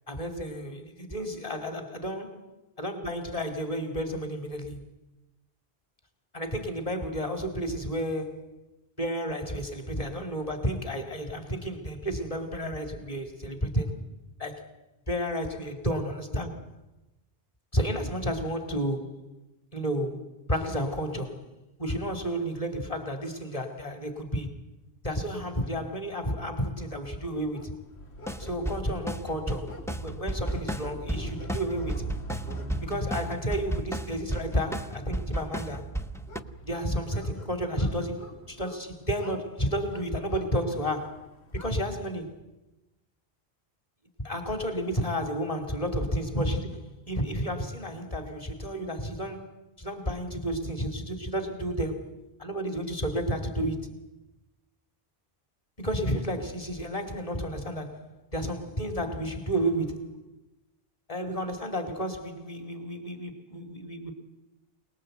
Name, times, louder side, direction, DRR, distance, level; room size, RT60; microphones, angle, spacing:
voice 1, 0.1-2.2 2.8-4.8 6.3-8.6 9.0-14.0 14.4-14.7 15.1-16.6 17.7-19.3 19.7-21.4 21.8-24.5 25.0-27.8 28.4-32.1 32.8-33.7 34.1-35.9 36.7-41.3 41.5-42.3 44.2-53.9 55.8-60.1 61.1-64.1, equal, 35° left, 2.7 m, -31 dB
sound 1, 27.3-41.8, right 2 dB, 90° left, 2.3 m, -43 dB
sound 2, 28.2-36.4, right 1 dB, 5° left, 0.8 m, -34 dB
27.5 x 20.0 x 8.0 m
omnidirectional pair, 1.1 m